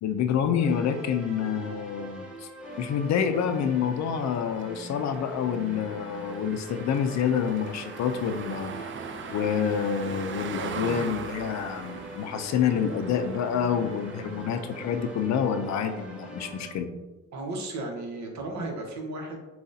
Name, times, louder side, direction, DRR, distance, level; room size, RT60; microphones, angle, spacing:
voice 1, 0.0-2.5 2.8-8.7 9.3-16.9, left 7 dB, 65° left, 8 dB, 0.5 m, -27 dB
sound 1, 0.6-16.7, right 1 dB, 5° right, 1.1 m, -43 dB
sound 2, 2.6-15.6, right 6 dB, 40° right, 0.4 m, -41 dB
voice 2, 17.3-19.4, right 2 dB, 65° right, 1 dB, 1.1 m, -34 dB
7.0 x 2.4 x 2.7 m, 1.1 s
cardioid pair, 90°, 30 cm